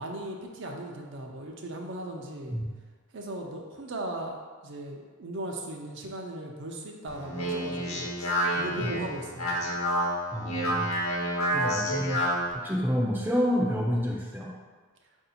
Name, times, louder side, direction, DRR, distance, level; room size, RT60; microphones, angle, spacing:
voice 1, 0.0-2.6 3.1-9.7, right 1 dB, 55° right, 1 dB, 0.5 m, -38 dB
Speech, 7.1-12.5, equal, 85° left, 1.0 m, -29 dB
voice 2, 10.3-10.9 11.5-12.2 12.5-14.5, equal, 10° right, -3 dB, 0.5 m, -28 dB
4.5 x 2.7 x 4.2 m, 1.5 s
head